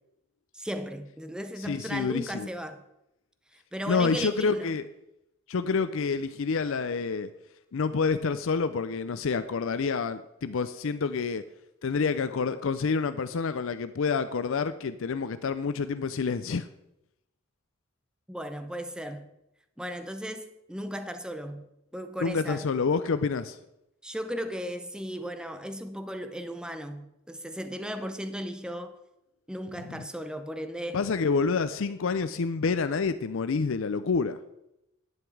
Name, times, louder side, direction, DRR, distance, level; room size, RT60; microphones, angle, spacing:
voice 1, 0.5-2.8 3.5-4.8 18.3-19.4 19.8-22.7 24.0-29.0 29.5-31.0, equal, 5° right, 0.7 m, -36 dB
voice 2, 1.6-2.5 3.9-4.9 5.5-7.3 7.7-11.4 11.8-16.7 22.2-23.6 29.9-30.0 30.9-34.4, left 5 dB, 65° left, 0.5 m, -28 dB
11.0 x 9.1 x 4.7 m
head